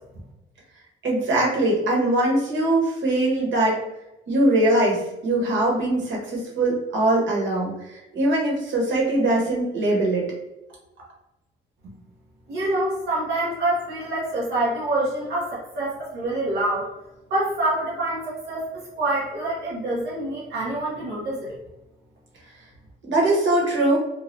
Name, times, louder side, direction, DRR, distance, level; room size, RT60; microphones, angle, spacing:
voice 1, 1.0-3.8 4.3-10.2 23.1-24.0, right 1 dB, 70° right, -2 dB, 1.3 m, -22 dB
voice 2, 12.5-16.9 17.3-21.6, right 1 dB, 85° right, -8 dB, 0.9 m, -26 dB
2.7 x 2.3 x 3.2 m, 0.95 s
cardioid pair, 90°, 20 cm